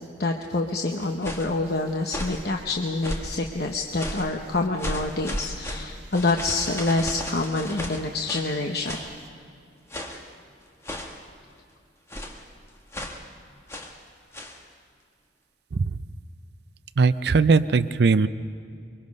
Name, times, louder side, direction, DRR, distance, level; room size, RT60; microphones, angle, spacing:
voice 1, 0.2-9.0, left 2 dB, 55° left, 2 dB, 1.0 m, -27 dB
sound 1, 1.0-1.6 2.0-2.5 3.0-3.4 4.0-4.4 4.8-8.5 8.9-9.1 9.9-10.3 10.8-11.3 12.1-12.4 12.9-13.2 13.7-14.0 14.3-14.6, left 1 dB, 15° left, 1.4 m, -34 dB
voice 2, 17.0-18.3, right 4 dB, 60° right, 13 dB, 0.5 m, -20 dB
23.5 x 23.5 x 5.4 m, 2.4 s
head